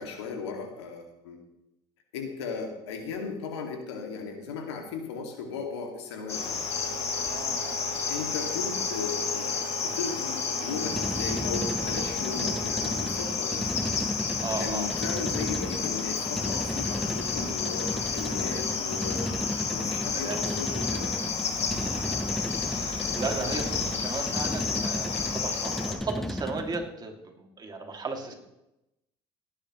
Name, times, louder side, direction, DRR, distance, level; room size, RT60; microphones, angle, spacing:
voice 1, 0.0-1.4 2.1-6.6 8.0-13.7 14.5-19.3 19.7-21.1, left 5 dB, 85° left, 3 dB, 2.3 m, -36 dB
Cricket, 6.3-25.9, left 5 dB, 50° left, 2.4 m, -31 dB
Wind instrument woodwind instrument, 6.6-13.3, right 9 dB, 80° right, 1.1 m, -43 dB
voice 2, 7.3-7.9 14.4-14.9 20.1-20.4 21.9-28.3, right 4 dB, 30° right, 2 dB, 2.5 m, -36 dB
sound 1, 10.7-26.9, equal, ahead, 0.7 m, -34 dB
18.0 x 9.8 x 3.1 m, 0.89 s
hypercardioid pair, 70°, 14 cm